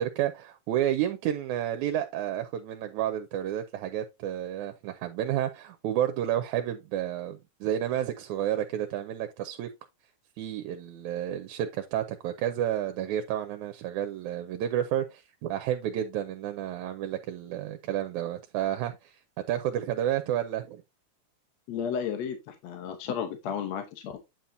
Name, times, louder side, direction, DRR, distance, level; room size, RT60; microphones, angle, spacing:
voice 1, 0.0-9.7 10.4-19.2 19.5-20.8, right 11 dB, 85° right, 2.1 m, -30 dB
voice 2, 21.7-24.2, left 7 dB, 70° left, 2.1 m, -33 dB
9.1 x 5.9 x 2.6 m
omnidirectional pair, 3.4 m